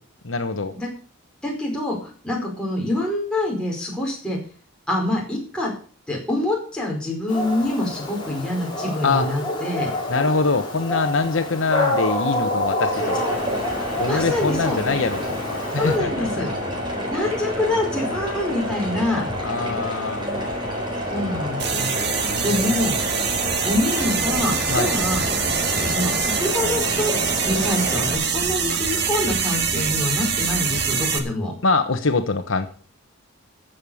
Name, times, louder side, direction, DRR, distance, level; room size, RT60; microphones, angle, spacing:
voice 1, 0.2-0.7 9.0-9.3 10.1-13.2 14.0-15.4 15.7-16.5 19.4-20.3 22.3-22.9 24.7-24.9 31.6-32.7, left 3 dB, 70° left, 7 dB, 1.1 m, -23 dB
voice 2, 1.4-2.0 2.2-4.4 4.9-5.7 6.1-9.9 13.8-14.8 15.8-16.5 17.1-19.3 21.1-21.9 22.4-22.9 23.6-25.2 25.8-27.2 27.5-31.5, left 1 dB, 5° left, -3 dB, 4.9 m, -25 dB
Dog, 7.3-16.0, left 1 dB, 20° left, 4.9 m, -28 dB
sound 1, 12.9-28.1, equal, 20° right, 3.9 m, -28 dB
sound 2, 21.6-31.2, right 6 dB, 50° right, 1.9 m, -24 dB
15.0 x 6.7 x 7.1 m, 0.41 s
head